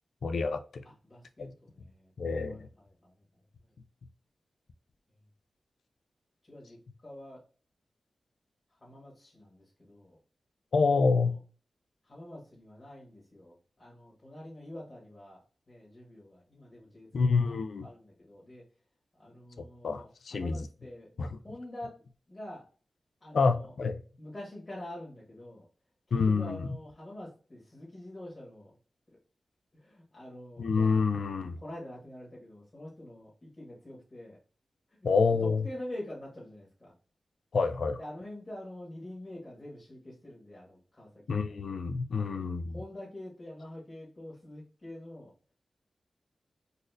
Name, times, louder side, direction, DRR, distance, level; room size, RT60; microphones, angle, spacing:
voice 1, 0.2-0.8 1.4-1.5 2.2-2.7 10.7-11.3 17.1-17.9 19.8-20.7 21.2-21.4 23.3-24.0 26.1-26.7 30.6-31.5 35.0-35.6 37.5-38.0 41.3-42.7, left 4 dB, 80° left, 9 dB, 0.4 m, -27 dB
voice 2, 0.8-2.1 2.5-3.1 6.5-7.4 8.8-10.2 11.2-11.4 12.0-15.4 15.7-17.5 17.8-18.6 19.2-21.1 21.4-22.0 22.3-22.7 23.2-23.7 24.2-25.6 26.1-28.7 29.7-30.6 31.4-34.4 35.0-35.1 35.4-36.9 38.0-41.5 42.1-42.5 42.7-45.3, left 1 dB, 35° left, -5 dB, 1.4 m, -46 dB
3.9 x 2.5 x 2.4 m, 0.38 s
cardioid pair, 55°, 0 cm